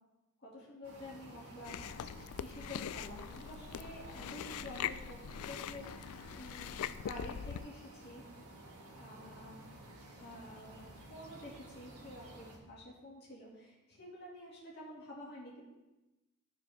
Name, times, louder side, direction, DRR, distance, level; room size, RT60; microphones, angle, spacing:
voice 1, 0.4-1.8 2.4-5.2 5.5-6.0 6.3-6.7 7.0-8.3 8.7-9.6 10.1-10.8 11.1-15.6, left 1 dB, 50° left, -5 dB, 2.3 m, -49 dB
sound 1, 0.8-12.6, right 1 dB, 90° right, 1.7 m, -53 dB
Chewing mastication, 1.6-7.7, left 9 dB, 75° left, 0.3 m, -42 dB
14.0 x 4.9 x 3.6 m, 1.0 s
head